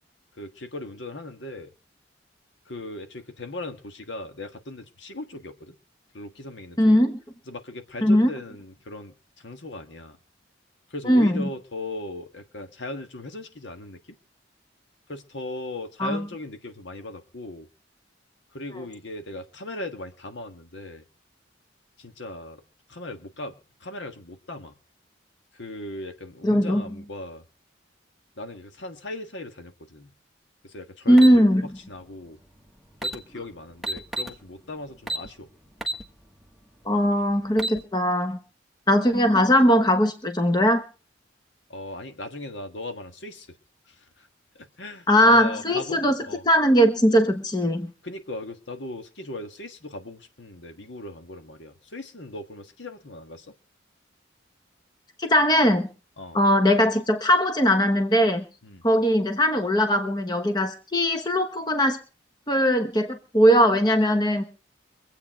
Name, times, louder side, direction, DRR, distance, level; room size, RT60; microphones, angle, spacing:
voice 1, 0.4-1.7 2.7-5.7 6.1-7.0 7.5-10.2 10.9-14.0 15.1-17.7 18.5-21.0 22.0-22.6 22.9-23.5 23.8-24.8 25.5-27.4 28.4-30.1 30.6-32.4 33.0-35.5 41.7-43.5 43.9-44.3 44.5-46.4 48.0-53.5 56.2-56.4 58.6-58.8, left 2 dB, 70° left, 7 dB, 1.6 m, -38 dB
voice 2, 6.8-7.2 8.0-8.3 11.0-11.5 16.0-16.2 18.8-18.9 26.4-26.8 31.1-31.7 36.8-38.4 38.9-40.8 45.1-47.9 55.2-55.9 56.3-58.4 58.8-62.0 62.5-64.5, equal, 20° left, 8 dB, 1.1 m, -20 dB
sound 1, 31.2-31.4 32.6-32.7 32.9-33.2 33.8-34.4 35.1-35.3 35.8-36.0 36.5-36.6 37.4-37.8, right 1 dB, ahead, 1.2 m, -29 dB
24.0 x 8.5 x 4.5 m, 0.34 s
head